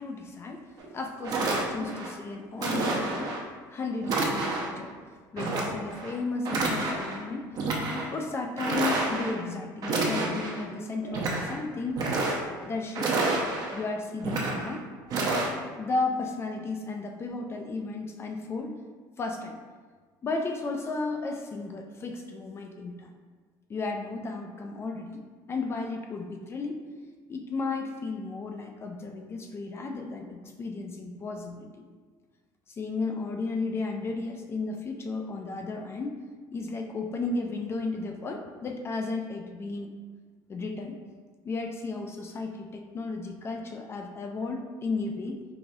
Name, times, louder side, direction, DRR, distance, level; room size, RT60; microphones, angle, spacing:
voice 1, 0.0-3.4 3.7-5.0 5.3-7.6 8.1-12.1 12.7-14.9 15.8-18.8 19.2-19.6 20.2-23.1 23.7-25.2 25.5-26.8 27.3-31.7 32.7-36.2 36.5-39.9 40.5-41.0 41.4-45.4, left 3 dB, 30° left, 3 dB, 0.3 m, -34 dB
sound 1, 0.8-0.9 1.2-2.1 2.6-3.4 4.0-4.8 5.4-6.1 6.4-7.2 7.5-8.1 8.6-9.4 9.8-10.6 11.0-11.6 11.9-12.6 12.9-13.8 14.2-14.7 15.1-15.5, right 2 dB, 45° right, 0.7 m, -29 dB
4.7 x 2.6 x 2.7 m, 1.5 s
cardioid pair, 120°, 9 cm